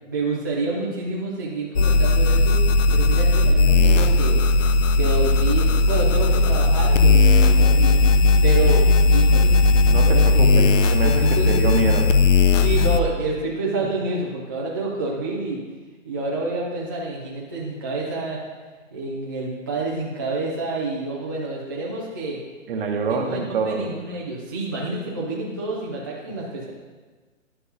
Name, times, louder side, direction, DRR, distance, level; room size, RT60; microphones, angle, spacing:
voice 1, 0.1-2.6 2.9-4.4 4.9-8.0 8.4-9.6 10.0-10.6 11.0-11.5 12.6-15.6 16.1-18.4 18.9-22.4 23.1-26.7, right 2 dB, 15° right, -7 dB, 0.4 m, -28 dB
sound 1, 1.8-13.0, left 3 dB, 70° left, 0.7 m, -17 dB
voice 2, 9.9-12.1 22.7-23.8, right 4 dB, 45° right, 3 dB, 1.0 m, -25 dB
11.5 x 5.4 x 2.7 m, 1.4 s
hypercardioid pair, 155°, 40 cm